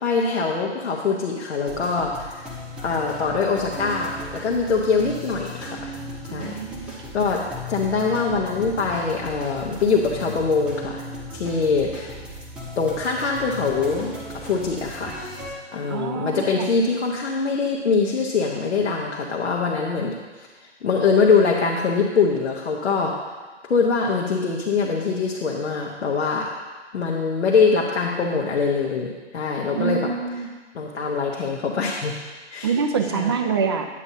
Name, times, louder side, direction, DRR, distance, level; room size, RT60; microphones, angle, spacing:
voice 1, 0.0-2.5 2.8-5.9 6.2-7.4 7.7-11.0 11.3-12.2 12.8-15.2 15.7-20.5 20.8-23.1 23.6-26.5 26.9-30.1 30.7-32.2 32.5-32.7 33.1-33.3, left 4 dB, 75° left, -2 dB, 1.2 m, -23 dB
sound 1, 1.6-15.5, left 1 dB, 5° right, 0.8 m, -37 dB
voice 2, 6.3-6.9 15.9-16.7 29.7-30.5 32.6-33.9, right 6 dB, 25° right, 6 dB, 0.3 m, -25 dB
9.8 x 8.5 x 2.8 m, 1.3 s
hypercardioid pair, 135°, 35 cm